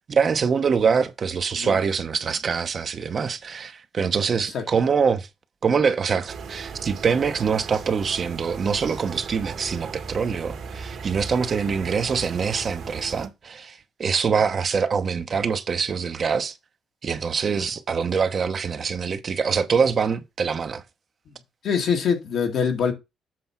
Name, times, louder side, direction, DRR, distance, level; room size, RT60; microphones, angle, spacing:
voice 1, 0.1-5.3 5.6-16.6 17.0-20.8, right 6 dB, 45° right, 0.8 m, -24 dB
sound 1, 6.3-13.3, right 5 dB, 65° right, 1.6 m, -37 dB
voice 2, 21.6-22.9, left 6 dB, 70° left, 1.8 m, -23 dB
7.7 x 3.4 x 5.7 m
cardioid pair, 90°, 0 cm